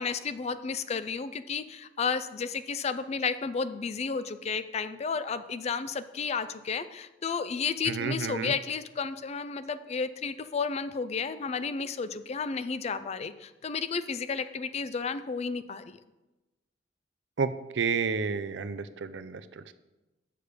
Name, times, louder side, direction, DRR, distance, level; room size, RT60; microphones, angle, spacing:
voice 1, 0.0-16.0, left 5 dB, 35° left, 13 dB, 0.4 m, -32 dB
voice 2, 7.9-8.5 17.4-19.7, right 5 dB, 85° right, 12 dB, 0.5 m, -31 dB
6.7 x 6.7 x 5.1 m, 1.1 s
head